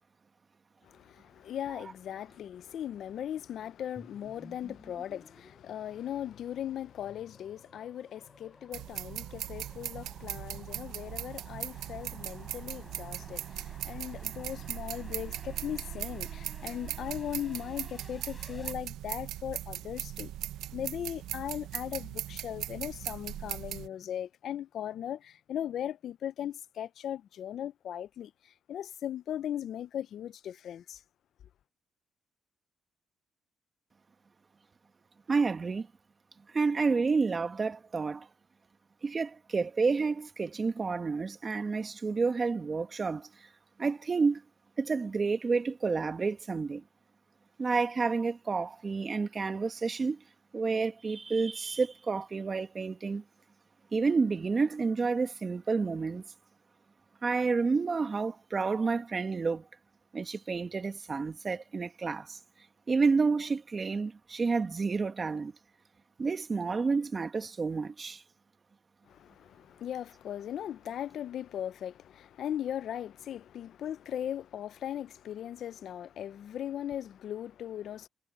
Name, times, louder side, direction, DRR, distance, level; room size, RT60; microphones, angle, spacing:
voice 1, 0.8-20.3 20.7-31.0 69.1-78.1, left 10 dB, 70° left, 0.5 m, -38 dB
sound 1, 4.0-18.7, left 2 dB, 15° left, 6.8 m, -55 dB
sound 2, 8.7-23.9, right 13 dB, 85° right, 0.9 m, -39 dB
voice 2, 35.3-35.9 36.5-38.3 39.0-43.3 43.8-44.4 44.8-46.8 47.6-50.2 50.5-53.2 53.9-56.3 57.2-59.6 60.1-62.4 62.9-65.5 66.2-68.2, right 4 dB, 35° right, 1.9 m, -30 dB
cardioid pair, 90°, 0 cm